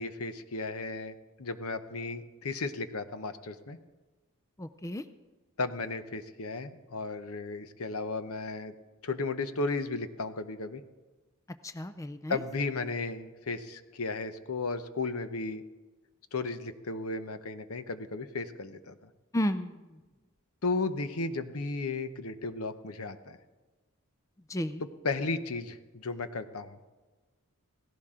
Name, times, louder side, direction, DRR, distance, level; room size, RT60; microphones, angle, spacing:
voice 1, 0.0-3.8 5.6-8.7 9.0-10.8 12.3-15.6 16.3-19.1 20.6-23.4 24.8-26.8, left 3 dB, 75° left, 10 dB, 0.9 m, -34 dB
voice 2, 4.6-5.0 11.6-12.4 19.3-19.7 24.5-24.8, equal, 15° left, 11 dB, 0.4 m, -32 dB
17.0 x 16.0 x 3.7 m, 1.2 s
head